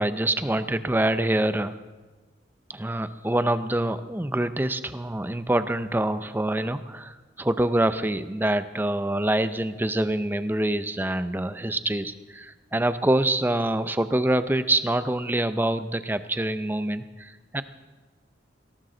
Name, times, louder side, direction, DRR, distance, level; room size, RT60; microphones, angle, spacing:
voice 1, 0.0-1.7 2.7-17.6, right 1 dB, 10° right, 12 dB, 0.6 m, -25 dB
19.0 x 18.0 x 3.9 m, 1.3 s
head